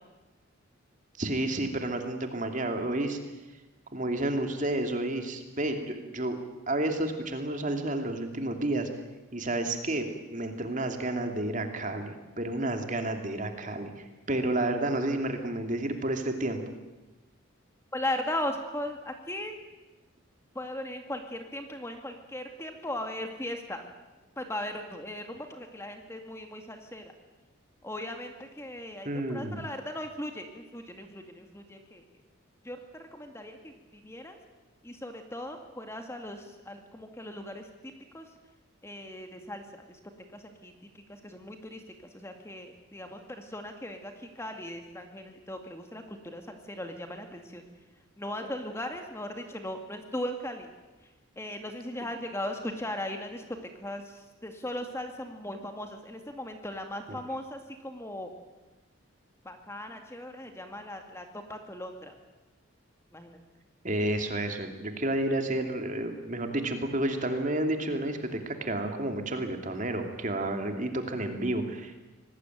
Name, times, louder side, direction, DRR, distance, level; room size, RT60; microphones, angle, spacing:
voice 1, 1.2-3.2 3.9-6.4 6.7-8.9 9.3-16.7 29.0-29.6 57.1-57.2 63.8-72.0, right 1 dB, 40° right, 5 dB, 2.7 m, -31 dB
voice 2, 17.9-19.6 20.6-23.9 24.4-27.1 27.8-32.0 32.6-34.4 34.8-37.7 38.1-38.3 38.8-40.0 40.3-40.7 41.1-41.8 42.1-47.6 48.2-50.7 51.4-53.4 53.8-58.3 59.4-62.1 63.1-63.4, left 1 dB, 15° left, 5 dB, 2.1 m, -38 dB
25.5 x 19.0 x 9.2 m, 1.1 s
head